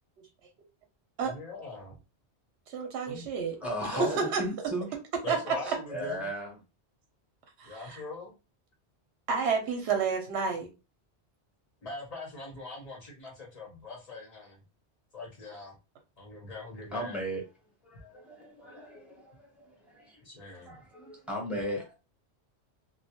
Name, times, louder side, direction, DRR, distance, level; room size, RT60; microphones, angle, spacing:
voice 1, 1.2-2.0 3.0-3.3 3.9-4.2 5.2-6.3 7.6-8.4 11.8-14.6 15.1-15.8 16.2-17.2 20.2-20.8, left 3 dB, 45° left, 0.6 m, -42 dB
voice 2, 2.7-4.4 5.3-5.5 7.6-8.0 9.3-10.7, right 5 dB, 80° right, 0.9 m, -30 dB
voice 3, 3.6-4.9 5.6-6.6 16.8-17.4 17.8-20.2 20.5-21.9, equal, ahead, 0.7 m, -36 dB
2.2 x 2.1 x 2.8 m
omnidirectional pair, 1.1 m